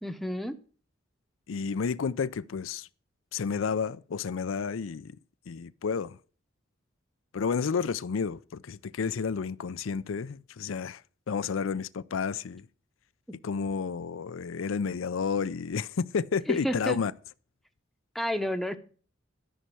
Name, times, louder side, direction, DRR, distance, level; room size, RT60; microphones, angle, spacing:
voice 1, 0.0-0.6 13.3-13.4 16.5-17.0 18.1-18.8, equal, ahead, 0.8 m, -30 dB
voice 2, 1.5-2.9 3.3-5.2 5.5-6.2 7.3-11.0 11.3-12.6 13.4-17.1, left 5 dB, 80° left, 0.5 m, -31 dB
13.0 x 5.6 x 7.6 m
head